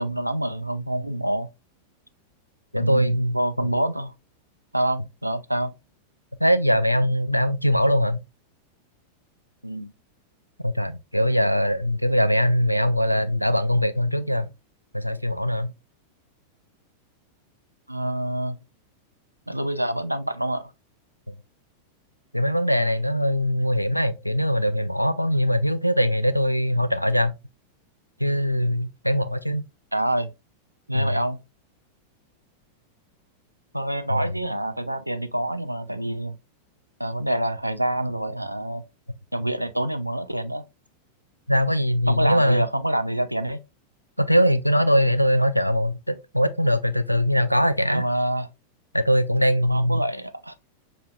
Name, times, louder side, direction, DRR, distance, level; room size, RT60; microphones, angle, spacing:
voice 1, 0.0-1.5 2.8-4.1 4.7-5.7 9.6-9.9 17.9-18.6 19.5-20.7 29.9-30.3 30.9-31.4 33.7-36.4 37.0-38.8 39.3-40.7 42.1-43.6 47.9-48.5 49.6-50.5, right 1 dB, 90° right, 0.3 m, -26 dB
voice 2, 2.7-3.7 6.4-8.2 10.6-14.5 14.9-15.7 21.3-21.4 22.3-27.3 28.2-29.7 30.9-31.2 34.1-34.4 41.5-42.6 44.2-48.0 48.9-50.0, equal, 90° left, 0.3 m, -22 dB
5.9 x 2.7 x 2.3 m
figure-of-eight pair, 90°, 0 cm